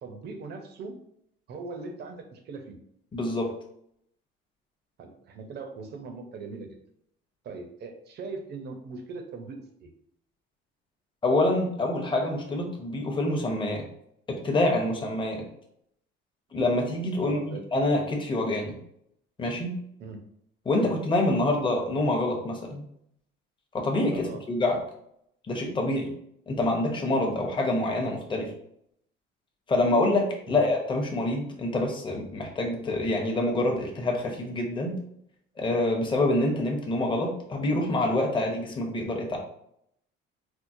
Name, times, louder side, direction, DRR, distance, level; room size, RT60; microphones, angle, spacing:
voice 1, 0.0-1.0 1.5-2.7 5.0-6.8 7.4-9.9 17.2-17.6 20.0-20.3 20.8-20.9 24.1-24.5 30.5-30.6, right 4 dB, 50° right, 5 dB, 0.6 m, -40 dB
voice 2, 3.1-3.5 11.2-13.8 14.3-15.4 16.5-18.8 19.4-19.7 20.6-22.8 23.7-24.8 25.5-26.1 26.5-28.5 29.7-34.9 35.6-39.4, left 2 dB, 25° left, 1 dB, 0.7 m, -26 dB
4.5 x 2.0 x 2.6 m, 0.71 s
cardioid pair, 130°, 21 cm